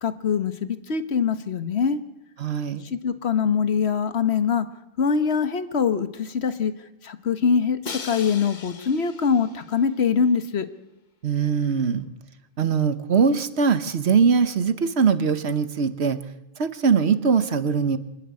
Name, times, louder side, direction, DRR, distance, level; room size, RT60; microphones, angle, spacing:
voice 1, 0.0-2.0 2.8-4.7 5.0-6.7 7.0-10.7, left 6 dB, 85° left, 11 dB, 1.4 m, -23 dB
voice 2, 2.4-2.8 11.2-12.1 12.6-16.2 16.6-18.0, right 6 dB, 85° right, 12 dB, 1.4 m, -21 dB
Crash cymbal, 7.8-9.9, left 5 dB, 50° left, 1.1 m, -38 dB
24.5 x 12.0 x 9.6 m, 0.98 s
omnidirectional pair, 1.1 m